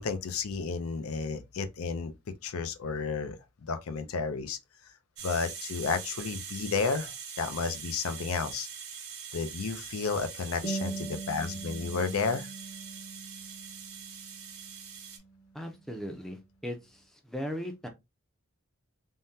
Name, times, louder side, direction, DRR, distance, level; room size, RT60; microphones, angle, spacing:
voice 1, 0.0-2.1 2.4-3.4 3.6-4.6 5.2-8.7 9.3-12.5, left 5 dB, 80° left, 0.5 m, -32 dB
sound 1, 5.2-15.2, right 7 dB, 90° right, 0.9 m, -43 dB
sound 2, 10.6-15.6, right 3 dB, 35° left, 0.8 m, -41 dB
voice 2, 15.5-17.9, equal, ahead, 0.5 m, -38 dB
3.5 x 2.1 x 2.7 m
head